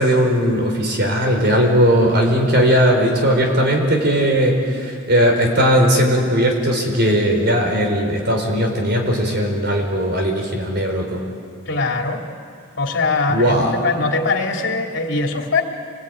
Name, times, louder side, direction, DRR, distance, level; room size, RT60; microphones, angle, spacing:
voice 1, 0.0-11.2 13.3-13.7, equal, 55° right, 2 dB, 4.6 m, -18 dB
voice 2, 11.7-12.3 12.8-15.6, left 3 dB, 65° left, 2 dB, 2.9 m, -21 dB
28.5 x 21.0 x 9.3 m, 2.3 s
head